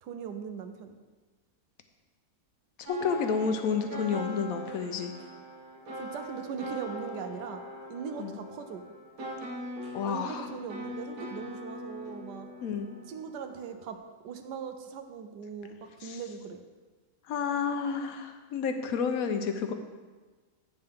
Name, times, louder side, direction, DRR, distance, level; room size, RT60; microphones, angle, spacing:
voice 1, 0.0-1.0 6.0-7.6 7.9-8.8 10.1-12.5 13.1-14.0 14.2-16.6, right 6 dB, 80° right, 7 dB, 1.2 m, -40 dB
voice 2, 2.8-5.1 8.2-8.4 9.9-10.5 12.6-13.0 16.0-16.2 17.3-19.7, left 6 dB, 65° left, 7 dB, 1.0 m, -30 dB
sound 1, 2.9-14.0, equal, 65° right, 1.4 m, -41 dB
9.1 x 6.6 x 3.5 m, 1.3 s
omnidirectional pair, 1.8 m